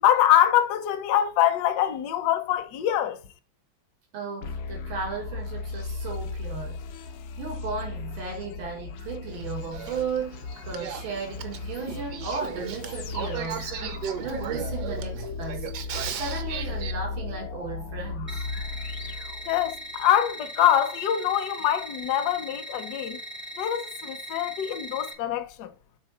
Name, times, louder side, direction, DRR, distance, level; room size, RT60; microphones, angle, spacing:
voice 1, 0.0-3.2 19.5-23.2 23.6-25.7, left 11 dB, 65° left, 1.2 m, -24 dB
voice 2, 4.1-6.9 7.4-13.7 14.2-18.5, right 5 dB, 90° right, 2.4 m, -35 dB
sound 1, 4.4-20.0, left 4 dB, 80° left, 1.5 m, -36 dB
Male speech man speaking / Female speech woman speaking / Conversation, 9.3-16.9, right 8 dB, 65° right, 1.3 m, -36 dB
sound 2, 18.3-25.1, right 1 dB, 15° right, 0.4 m, -39 dB
6.5 x 4.0 x 4.9 m
omnidirectional pair, 2.1 m